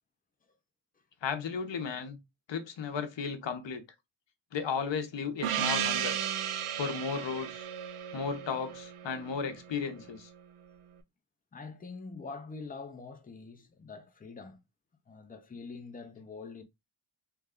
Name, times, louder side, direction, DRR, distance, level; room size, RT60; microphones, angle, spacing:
voice 1, 1.2-2.2 2.5-3.8 4.5-6.2 6.8-7.7 8.1-10.3, left 6 dB, 60° left, 0.8 m, -34 dB
Gong, 5.4-9.8, right 9 dB, 85° right, 0.6 m, -34 dB
voice 2, 11.5-14.6 15.1-16.6, left 4 dB, 20° left, 0.4 m, -44 dB
3.3 x 2.2 x 3.5 m
wide cardioid pair, 145°, 49 cm